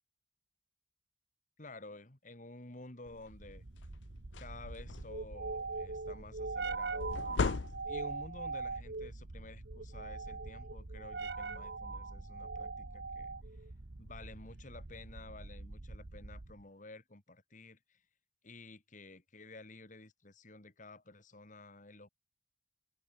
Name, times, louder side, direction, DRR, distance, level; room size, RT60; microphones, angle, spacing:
voice 1, 1.6-3.6 4.4-7.5 7.9-13.4 14.0-18.0 18.4-22.1, left 2 dB, 45° left, 2.3 m, -52 dB
sound 1, 3.1-3.3 3.8-3.9 4.2-5.3 7.0-8.2, left 4 dB, 90° left, 0.6 m, -36 dB
sound 2, 3.3-16.6, right 3 dB, 65° right, 1.2 m, -42 dB
head